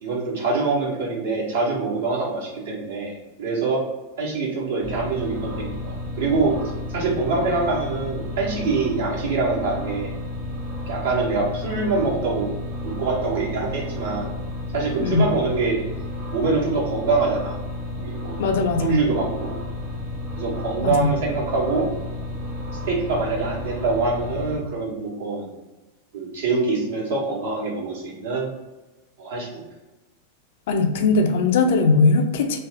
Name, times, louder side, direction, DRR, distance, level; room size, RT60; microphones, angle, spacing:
voice 1, 0.0-3.1 3.4-3.8 4.2-6.5 6.9-10.1 10.9-12.5 12.8-14.3 14.7-15.8 16.3-17.6 18.0-18.4 18.8-19.6 20.4-21.9 22.8-25.5 26.1-28.5 29.2-29.5, right 3 dB, 65° right, -5 dB, 1.4 m, -24 dB
sound 1, 4.8-24.6, left 2 dB, 30° right, 1.1 m, -32 dB
voice 2, 18.4-19.0 20.8-21.1 30.7-32.6, left 3 dB, 55° left, 5 dB, 0.5 m, -19 dB
3.3 x 2.7 x 3.5 m, 1.1 s
figure-of-eight pair, 90°, 0 cm